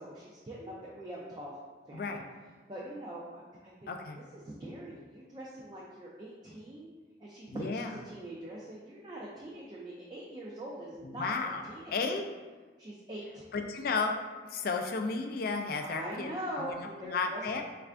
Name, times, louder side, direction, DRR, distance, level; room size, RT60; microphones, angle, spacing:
voice 1, 0.0-1.5 1.9-2.2 2.7-3.9 4.3-6.9 7.2-12.0 12.8-13.5 15.8-17.6, right 1 dB, 25° right, -5 dB, 0.4 m, -43 dB
voice 2, 3.9-4.2 7.5-7.9 11.0-11.6 11.9-12.2 13.5-14.1 14.4-17.6, left 4 dB, 55° left, 4 dB, 0.3 m, -33 dB
3.3 x 2.5 x 3.3 m, 1.3 s
head